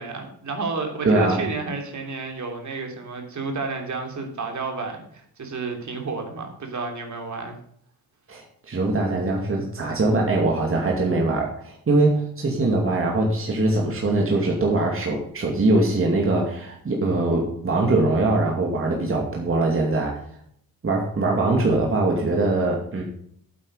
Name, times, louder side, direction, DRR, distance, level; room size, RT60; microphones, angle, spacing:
voice 1, 0.0-7.5, right 4 dB, 50° right, 3 dB, 3.1 m, -31 dB
voice 2, 1.0-1.4 8.3-20.2 20.8-23.0, right 2 dB, 35° right, -1 dB, 2.4 m, -22 dB
8.5 x 8.2 x 5.5 m, 0.66 s
cardioid pair, 85°, 36 cm